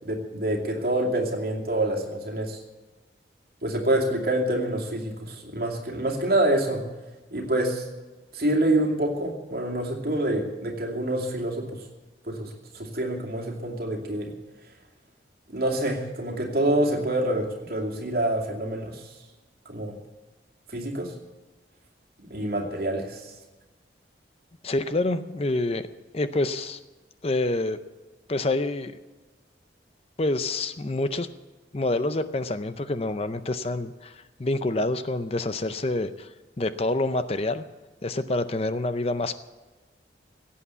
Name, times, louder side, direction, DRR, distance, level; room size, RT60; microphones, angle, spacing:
voice 1, 0.0-2.6 3.6-6.9 7.3-7.9 8.3-11.8 12.2-14.3 15.5-19.1 19.7-20.0 20.7-21.1 22.2-23.3, right 1 dB, 55° right, 1 dB, 2.5 m, -27 dB
voice 2, 24.6-25.9 26.1-26.8 27.2-27.8 28.3-28.9 30.2-31.3 31.7-36.3 36.6-37.6 38.0-39.4, left 2 dB, 35° left, 12 dB, 0.5 m, -27 dB
16.5 x 8.6 x 8.2 m, 1.2 s
head